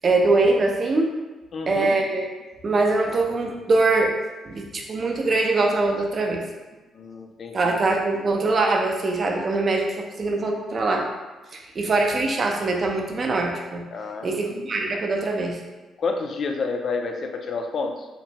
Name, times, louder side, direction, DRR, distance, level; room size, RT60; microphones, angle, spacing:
voice 1, 0.0-1.1 1.7-2.3 2.6-4.1 4.4-6.4 7.5-11.1 11.5-13.8 14.2-15.6, right 3 dB, 45° right, 1 dB, 0.4 m, -22 dB
voice 2, 1.5-2.0 6.9-7.8 13.9-14.3 16.0-18.1, left 4 dB, 55° left, 4 dB, 0.3 m, -29 dB
2.9 x 2.1 x 2.7 m, 1.2 s
cardioid pair, 90°, 0 cm